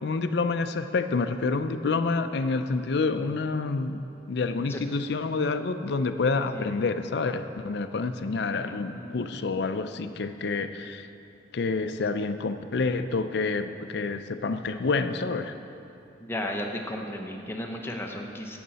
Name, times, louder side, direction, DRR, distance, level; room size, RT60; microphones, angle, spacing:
voice 1, 0.0-4.0 4.3-11.1 11.5-15.6, left 4 dB, 60° left, 9 dB, 0.4 m, -28 dB
voice 2, 6.5-6.9 8.5-9.4 16.2-18.6, left 1 dB, 10° left, 1 dB, 0.7 m, -35 dB
11.5 x 7.7 x 4.1 m, 2.7 s
head